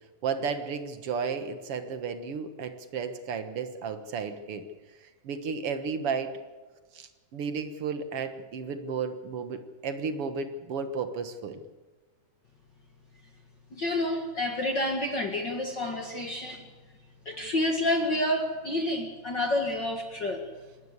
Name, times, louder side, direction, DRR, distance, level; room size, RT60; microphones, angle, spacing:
voice 1, 0.2-4.6 5.2-6.3 6.9-11.6, right 5 dB, 65° right, 8 dB, 1.4 m, -33 dB
voice 2, 13.7-16.7 17.2-20.4, left 1 dB, 45° left, 3 dB, 1.5 m, -29 dB
27.5 x 12.5 x 8.2 m, 1.3 s
omnidirectional pair, 4.6 m